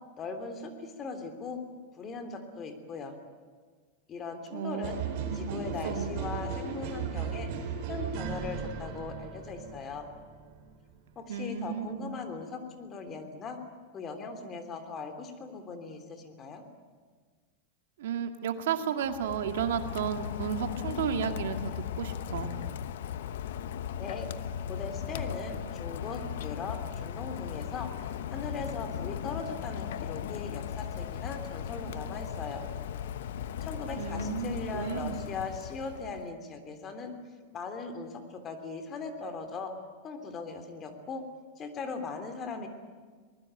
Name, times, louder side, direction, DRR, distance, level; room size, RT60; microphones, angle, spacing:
voice 1, 0.1-1.6 2.0-3.2 4.1-5.0 5.3-7.5 7.9-10.1 11.1-13.6 13.9-16.6 23.9-24.3 24.7-27.9 28.3-32.6 33.6-37.1 37.5-39.7 40.0-41.2 41.6-42.7, left 4 dB, 25° left, 7 dB, 3.2 m, -39 dB
voice 2, 4.5-4.9 5.3-6.1 11.3-12.1 18.0-22.5 34.0-35.2, right 8 dB, 80° right, 6 dB, 2.1 m, -33 dB
sound 1, 4.8-10.7, right 6 dB, 50° right, 4.5 m, -36 dB
Rain, 19.0-36.3, left 9 dB, 80° left, 1.1 m, -37 dB
23.5 x 20.0 x 9.0 m, 1.5 s
supercardioid pair, 140°, 0 cm